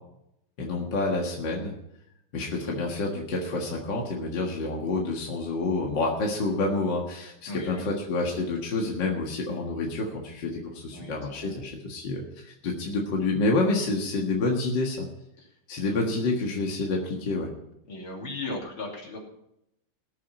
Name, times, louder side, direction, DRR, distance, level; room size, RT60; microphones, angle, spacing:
voice 1, 0.6-1.7 2.3-15.1 15.7-17.5, left 3 dB, 60° left, -1 dB, 2.3 m, -28 dB
voice 2, 7.5-8.0 10.9-11.6 15.4-15.5 15.8-16.1 17.9-19.2, left 2 dB, 80° left, -1 dB, 3.9 m, -37 dB
18.0 x 7.5 x 5.8 m, 0.81 s
omnidirectional pair, 2.3 m